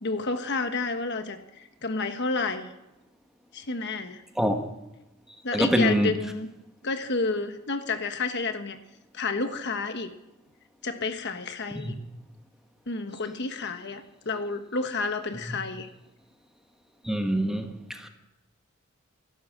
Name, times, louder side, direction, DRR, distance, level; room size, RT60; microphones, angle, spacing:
voice 1, 0.0-2.7 3.5-4.2 5.4-6.5 6.8-8.8 9.1-10.1 10.8-12.0 12.9-15.9, left 3 dB, 55° left, 1.3 m, -30 dB
voice 2, 5.5-6.1 11.8-11.9 17.0-18.1, equal, ahead, 1.3 m, -25 dB
15.5 x 12.0 x 7.5 m
head